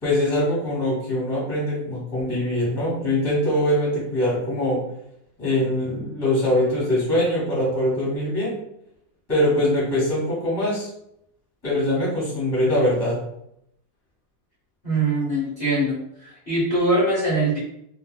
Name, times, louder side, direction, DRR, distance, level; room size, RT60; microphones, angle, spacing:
voice 1, 0.0-4.8 5.4-8.5 9.3-10.9 11.6-13.2, left 1 dB, 15° left, -6 dB, 1.3 m, -22 dB
voice 2, 14.8-17.6, right 1 dB, 35° left, -10 dB, 1.2 m, -22 dB
3.3 x 2.6 x 2.3 m, 0.76 s
omnidirectional pair, 2.0 m